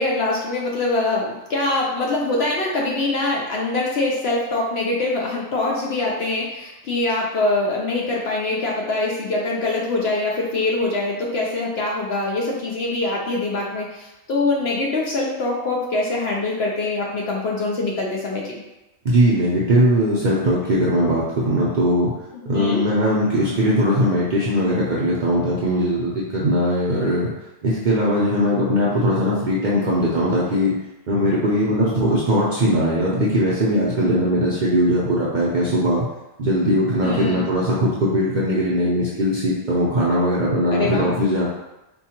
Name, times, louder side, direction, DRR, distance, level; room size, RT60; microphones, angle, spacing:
voice 1, 0.0-18.6 22.5-22.8 37.0-37.4 40.7-41.1, left 2 dB, 60° left, -2 dB, 0.7 m, -24 dB
voice 2, 19.0-22.1 22.5-27.3 27.6-30.7 31.1-36.1 36.4-41.5, equal, 55° right, -7 dB, 0.5 m, -20 dB
4.3 x 2.3 x 2.8 m, 0.98 s
omnidirectional pair, 1.4 m